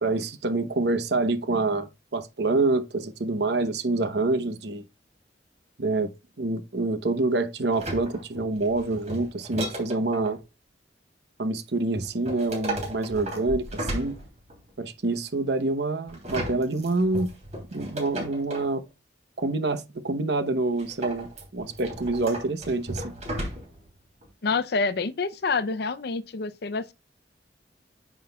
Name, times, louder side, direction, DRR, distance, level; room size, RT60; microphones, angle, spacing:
voice 1, 0.0-4.8 5.8-6.1 6.4-10.4 11.4-14.2 14.8-17.3 17.7-18.8 19.4-23.1, right 2 dB, 65° right, 0.9 m, -27 dB
sound 1, 7.7-10.4 11.9-14.7 16.1-18.7 20.8-23.9 24.2-24.3, right 1 dB, 40° right, 3.1 m, -35 dB
voice 2, 24.4-26.9, left 4 dB, 60° left, 0.6 m, -27 dB
9.1 x 6.2 x 2.3 m
head